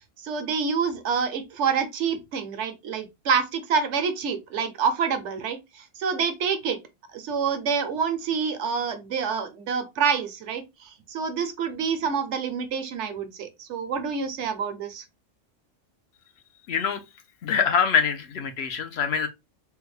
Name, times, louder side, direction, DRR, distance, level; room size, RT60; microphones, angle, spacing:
voice 1, 0.2-6.8 7.1-10.6 11.1-15.0, right 6 dB, 70° right, 1.0 m, -27 dB
voice 2, 16.7-17.0 17.4-19.3, left 6 dB, 65° left, 0.8 m, -24 dB
3.5 x 2.2 x 3.0 m
omnidirectional pair, 1.3 m